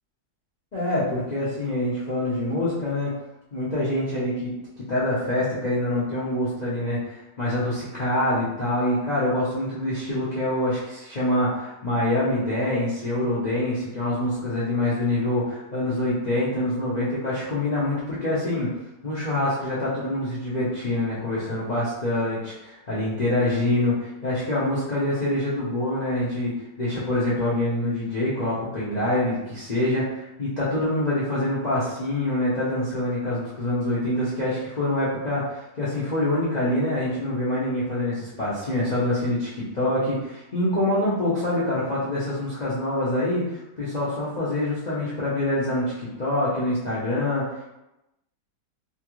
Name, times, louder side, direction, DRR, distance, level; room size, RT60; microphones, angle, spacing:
voice 1, 0.7-3.1 3.5-4.5 4.9-7.0 7.4-18.7 19.0-47.7, left 1 dB, 70° left, -9 dB, 0.4 m, -25 dB
3.0 x 2.4 x 3.0 m, 0.92 s
omnidirectional pair, 1.9 m